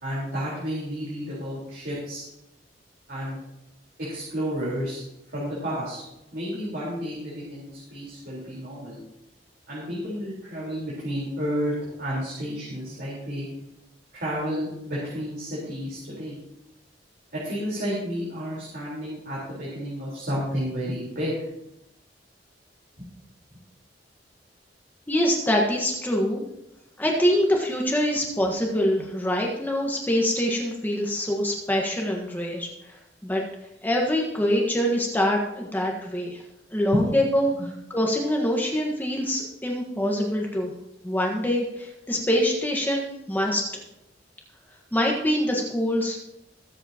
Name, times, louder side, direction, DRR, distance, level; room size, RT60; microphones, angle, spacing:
voice 1, 0.0-2.2 3.1-3.4 4.0-5.0 5.3-6.0 6.3-9.0 9.7-11.7 12.0-13.5 14.1-16.4 17.3-21.3 23.0-23.1 36.9-37.0 37.6-37.7, equal, 60° right, -7 dB, 4.3 m, -31 dB
voice 2, 25.1-26.4 27.0-32.7 33.2-33.4 33.8-36.4 36.7-37.5 37.9-40.7 41.0-43.6 44.9-46.2, equal, 10° left, -1 dB, 1.5 m, -24 dB
21.5 x 8.0 x 3.0 m, 0.88 s
head